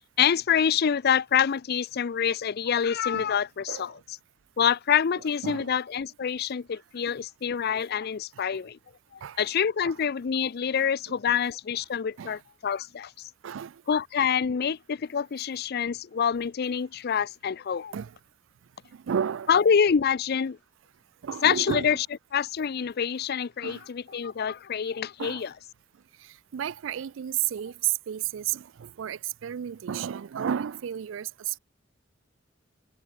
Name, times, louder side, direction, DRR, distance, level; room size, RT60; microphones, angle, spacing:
voice 1, 0.2-3.9 4.6-8.8 9.4-13.1 13.9-17.9 19.5-20.6 21.4-22.0 22.3-25.5, left 7 dB, 55° left, 0.4 m, -26 dB
voice 2, 13.4-13.8 17.9-18.2 18.9-19.5 21.2-22.0 23.6-23.8 25.2-25.5 26.2-31.6, right 9 dB, 75° right, 0.4 m, -32 dB
head